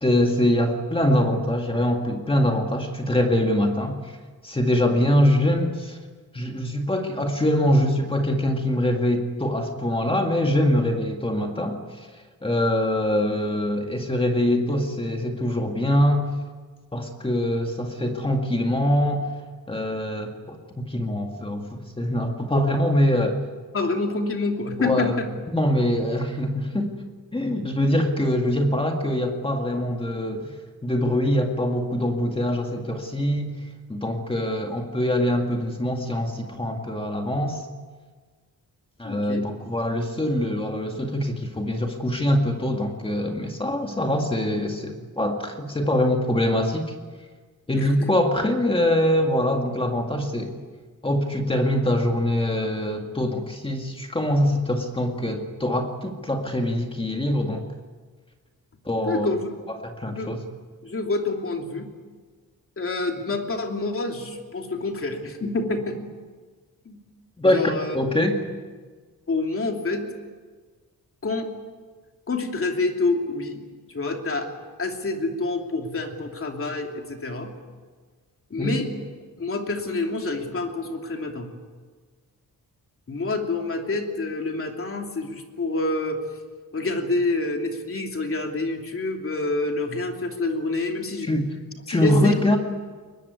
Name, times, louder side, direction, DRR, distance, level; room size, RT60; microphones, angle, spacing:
voice 1, 0.0-4.1 4.4-6.0 6.3-12.1 12.4-16.2 16.9-19.3 19.7-23.4 24.8-25.2 25.5-26.9 27.3-30.5 30.8-33.5 33.9-37.7 39.0-46.9 47.7-50.6 51.0-57.7 58.9-59.3 59.8-60.4 67.4-68.4 78.6-78.7 91.2-91.5 91.9-92.6, left 1 dB, 15° left, 3 dB, 2.0 m, -23 dB
voice 2, 23.7-25.3 39.0-39.4 47.8-48.1 59.0-59.5 60.1-60.4 60.8-61.9 62.8-66.0 66.8-67.0 67.4-68.0 69.3-70.1 71.2-71.5 72.3-73.6 73.9-74.5 74.8-77.5 78.5-78.9 79.4-81.5 83.1-86.2 86.7-91.3 91.9-92.4, left 3 dB, 35° left, 3 dB, 3.0 m, -27 dB
22.5 x 21.0 x 9.5 m, 1.5 s
wide cardioid pair, 160°, 36 cm